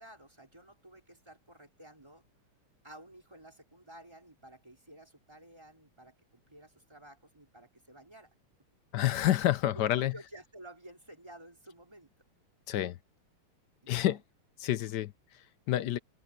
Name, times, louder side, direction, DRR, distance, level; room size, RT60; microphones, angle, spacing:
voice 1, 0.0-2.2 2.8-8.3 9.7-12.1 13.8-14.2, right 1 dB, 10° right, 4.4 m, -53 dB
voice 2, 8.9-10.1 12.7-13.0 13.9-14.2 14.6-16.0, left 13 dB, 70° left, 1.1 m, -29 dB
open air
omnidirectional pair, 2.4 m